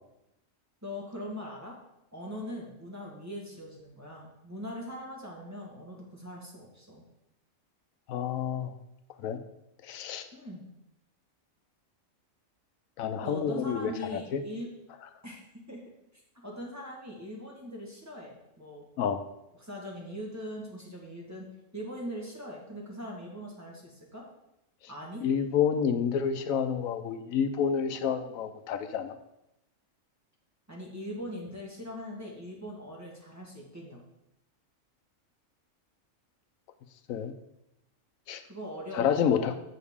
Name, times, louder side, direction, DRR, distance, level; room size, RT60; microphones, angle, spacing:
voice 1, 0.8-1.8 2.1-7.0 10.3-10.7 13.2-14.7 15.2-15.4 15.7-15.8 16.4-18.8 19.6-21.4 21.7-24.2 24.9-25.2 30.7-34.0 38.4-39.6, equal, 15° right, -3 dB, 1.4 m, -41 dB
voice 2, 8.1-8.7 9.2-9.4 9.8-10.3 13.0-14.4 19.0-19.2 25.2-29.2 37.1-37.3 38.3-38.4 38.9-39.6, left 7 dB, 90° left, 10 dB, 1.0 m, -29 dB
7.6 x 6.4 x 3.6 m, 0.87 s
omnidirectional pair, 1.4 m